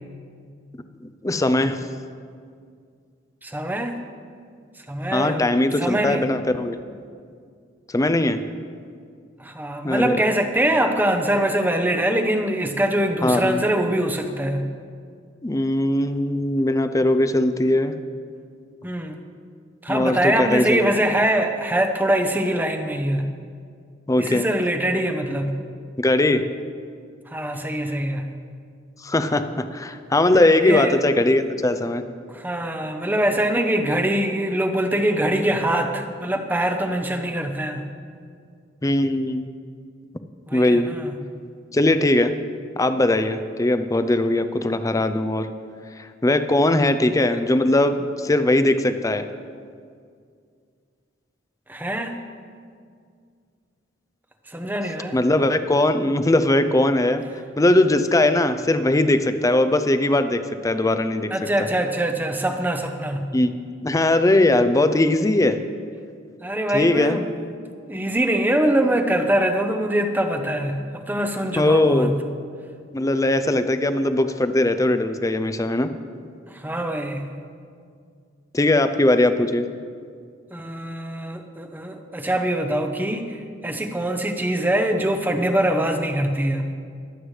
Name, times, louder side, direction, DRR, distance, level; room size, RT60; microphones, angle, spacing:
voice 1, 1.2-1.8 5.1-6.8 7.9-8.4 9.8-10.2 13.2-13.6 15.4-18.0 19.9-20.9 24.1-24.5 26.0-26.4 29.0-32.0 38.8-39.4 40.5-40.9 41.7-42.4 42.8-45.5 46.0-49.3 55.1-57.2 57.6-61.3 63.3-63.5 63.8-65.6 66.7-67.2 71.6-72.1 72.9-75.9 78.5-79.7, left 1 dB, 20° left, 10 dB, 0.5 m, -20 dB
voice 2, 3.4-4.0 4.9-6.3 9.4-14.6 18.8-19.2 19.8-23.2 24.2-25.5 27.3-28.3 30.6-31.0 32.3-37.8 40.5-41.2 51.7-52.1 54.5-55.2 61.3-63.3 66.4-67.4 67.9-72.1 76.5-77.2 80.5-86.7, right 1 dB, 10° right, 5 dB, 0.8 m, -23 dB
22.0 x 8.0 x 3.2 m, 2.2 s
head